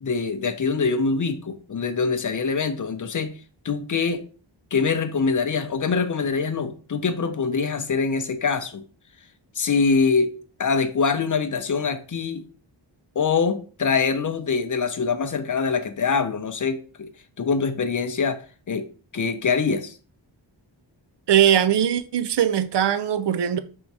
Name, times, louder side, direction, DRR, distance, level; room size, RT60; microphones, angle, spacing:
voice 1, 0.0-3.3 3.6-4.2 4.7-8.8 9.5-10.3 10.6-12.4 13.2-17.1 17.4-18.4 18.7-18.9 19.1-19.9, left 5 dB, 40° left, 0.6 m, -24 dB
voice 2, 21.3-23.6, right 9 dB, 65° right, 0.5 m, -20 dB
3.5 x 2.7 x 4.6 m
wide cardioid pair, 95°, 46 cm